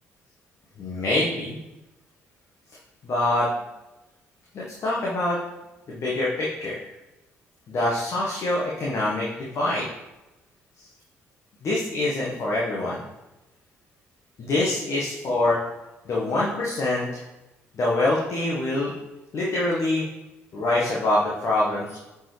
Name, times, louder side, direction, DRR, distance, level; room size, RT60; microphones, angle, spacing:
voice 1, 0.8-1.6 3.0-3.5 4.5-5.4 5.9-6.8 7.7-9.9 11.6-13.0 14.4-15.6 16.1-17.2 17.8-18.9 19.3-20.0 20.5-22.0, left 2 dB, 50° left, -5 dB, 1.5 m, -25 dB
9.6 x 4.8 x 3.4 m, 1.0 s
figure-of-eight pair, 45°, 7 cm